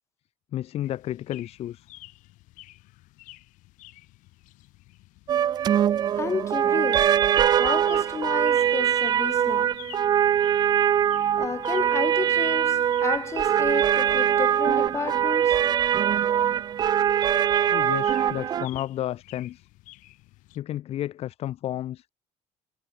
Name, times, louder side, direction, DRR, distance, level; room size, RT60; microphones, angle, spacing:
voice 1, 0.5-1.9 17.7-19.7 20.6-22.1, left 12 dB, 55° left, 1.9 m, -32 dB
sound 1, 0.8-20.6, left 19 dB, 90° left, 7.4 m, -51 dB
sound 2, 5.3-18.7, right 10 dB, 35° right, 0.4 m, -22 dB
voice 2, 5.6-9.9 10.2-10.5 10.9-15.7, left 5 dB, 20° left, 2.3 m, -33 dB
cardioid pair, 160°, 13 cm